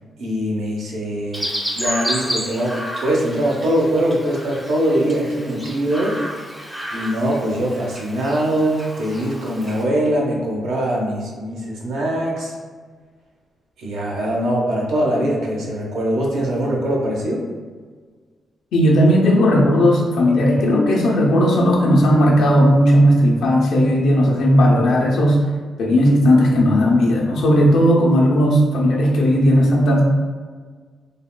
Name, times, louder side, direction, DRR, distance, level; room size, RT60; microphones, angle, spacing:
voice 1, 0.2-1.5 1.8-6.2 6.9-12.5 13.8-17.4, right 1 dB, 85° right, -2 dB, 0.6 m, -22 dB
Chirp tweet, 1.3-9.8, equal, 5° right, 0.5 m, -31 dB
voice 2, 18.7-25.4 25.8-30.0, equal, 80° left, -2 dB, 0.6 m, -15 dB
3.4 x 2.2 x 2.2 m, 1.5 s
cardioid pair, 125°, 0 cm